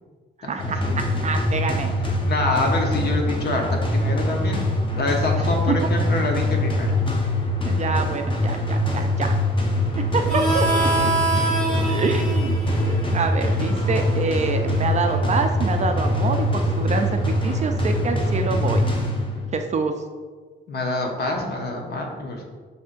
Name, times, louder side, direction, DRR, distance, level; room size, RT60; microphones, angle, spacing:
voice 1, 0.4-1.9 7.6-9.4 10.1-11.1 11.9-12.6 13.1-18.9 19.5-19.9, right 4 dB, 35° right, 6 dB, 0.4 m, -26 dB
sound 1, 0.6-19.6, left 1 dB, 25° left, 0.8 m, -23 dB
voice 2, 2.2-4.6 4.9-7.0 20.7-22.4, left 2 dB, 55° left, 1 dB, 0.9 m, -26 dB
sound 2, 9.8-18.5, left 1 dB, 75° left, 1.2 m, -39 dB
Harmonica, 10.3-15.5, right 3 dB, 5° left, 1.3 m, -27 dB
6.7 x 2.7 x 2.5 m, 1.5 s
cardioid pair, 90°, 20 cm